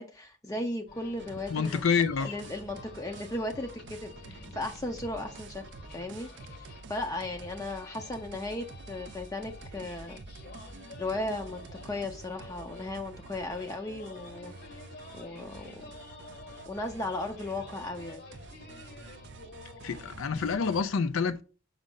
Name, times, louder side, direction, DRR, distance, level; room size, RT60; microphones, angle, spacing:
voice 1, 0.0-1.8 2.2-5.6 5.9-6.3 6.6-10.2 11.0-14.8 15.1-15.8 16.7-18.2, left 2 dB, 15° left, 0.6 m, -36 dB
sound 1, 0.9-20.7, left 3 dB, 50° left, 1.1 m, -49 dB
sound 2, 1.2-20.8, right 4 dB, 55° right, 0.5 m, -49 dB
voice 2, 1.5-2.3 19.8-21.4, left 5 dB, 70° left, 0.4 m, -27 dB
5.3 x 5.0 x 3.8 m
head